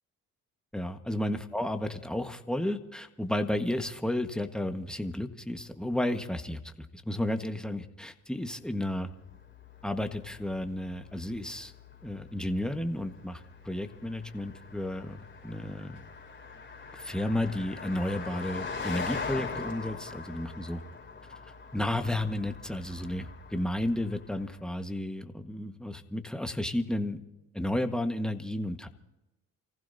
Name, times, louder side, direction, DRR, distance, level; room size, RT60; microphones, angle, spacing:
voice 1, 0.7-9.1 9.8-11.7 12.0-16.0 16.9-20.8 21.7-27.2 27.5-28.9, left 1 dB, ahead, 6 dB, 1.6 m, -32 dB
Car passing by, 8.8-24.5, left 4 dB, 35° left, 3.0 m, -42 dB
29.0 x 15.5 x 2.8 m, 0.98 s
supercardioid pair, 65°, 33 cm